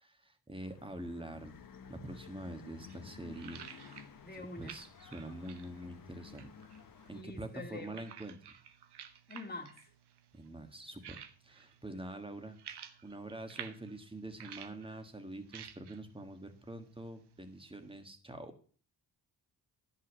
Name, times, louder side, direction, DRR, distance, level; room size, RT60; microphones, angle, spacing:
voice 1, 0.0-1.5 1.9-3.6 4.4-6.5 7.1-8.4 10.3-18.5, right 1 dB, 15° right, 1.6 m, -45 dB
sound 1, 0.6-7.2, left 6 dB, 55° left, 1.1 m, -54 dB
sound 2, 2.3-18.0, right 8 dB, 80° right, 1.0 m, -54 dB
voice 2, 4.2-4.8 7.1-8.0 9.3-9.9, left 3 dB, 25° left, 2.1 m, -45 dB
10.5 x 5.7 x 6.3 m
cardioid pair, 100°, 40 cm